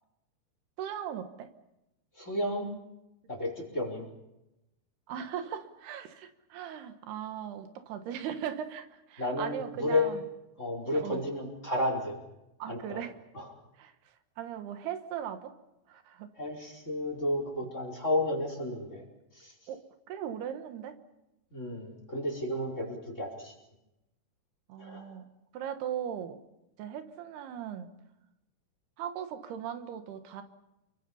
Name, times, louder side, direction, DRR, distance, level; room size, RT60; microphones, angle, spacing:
voice 1, 0.8-1.5 5.1-10.2 10.9-11.2 12.6-13.1 13.8-13.9 14.4-15.5 15.9-16.3 19.7-19.8 20.1-21.0 24.7-26.4 26.8-27.9 29.0-30.4, right 9 dB, 90° right, 8 dB, 3.4 m, -38 dB
voice 2, 2.2-2.7 3.3-4.1 9.2-10.1 10.6-12.2 12.7-13.0 13.3-13.5 16.4-19.0 19.3-19.5 21.5-23.5 24.8-25.1, left 1 dB, 20° left, 1 dB, 4.9 m, -32 dB
29.5 x 23.0 x 5.6 m, 0.94 s
omnidirectional pair, 4.5 m